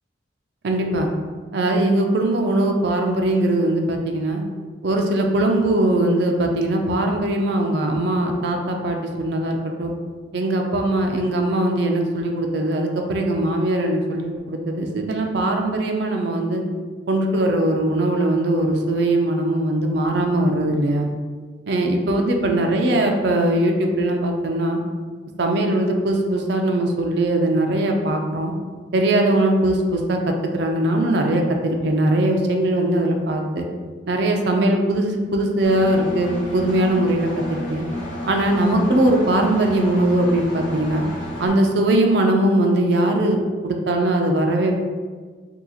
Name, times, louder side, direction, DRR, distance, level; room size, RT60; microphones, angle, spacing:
voice 1, 0.6-1.1 1.5-4.4 4.8-9.9 10.3-16.6 17.1-21.1 21.7-24.8 25.4-28.5 28.9-33.7 34.1-37.9 38.3-41.1 41.4-44.7, right 1 dB, 55° right, 3 dB, 0.4 m, -20 dB
Engine, 35.6-41.5, left 1 dB, 75° left, 0.8 m, -32 dB
2.8 x 2.3 x 3.8 m, 1.5 s
head